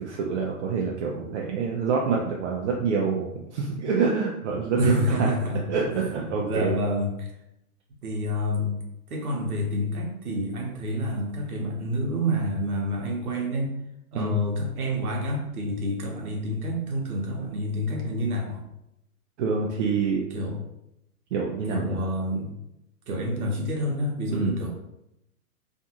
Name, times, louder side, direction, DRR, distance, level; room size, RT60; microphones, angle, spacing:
voice 1, 0.0-5.3 5.7-6.7 14.1-14.3 19.4-20.2 21.3-22.1 24.3-24.5, right 5 dB, 50° right, -2 dB, 0.5 m, -26 dB
voice 2, 4.8-5.6 6.5-7.3 8.0-8.8 9.1-13.7 14.1-18.6 20.3-20.6 21.7-22.5 23.1-24.7, equal, 70° right, 0 dB, 1.0 m, -28 dB
2.5 x 2.4 x 2.8 m, 0.84 s
hypercardioid pair, 120°, 45 cm